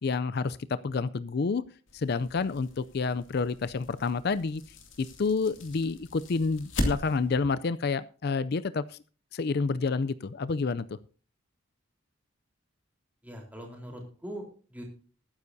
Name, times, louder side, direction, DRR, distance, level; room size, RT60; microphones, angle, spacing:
voice 1, 0.0-1.6 1.9-4.6 5.0-9.0 9.3-11.0, left 4 dB, 50° left, 15 dB, 0.4 m, -29 dB
sound 1, 1.9-7.5, left 1 dB, 65° left, 2.5 m, -38 dB
voice 2, 13.2-14.8, equal, 10° right, 1 dB, 3.9 m, -42 dB
20.0 x 9.7 x 2.7 m, 0.38 s
head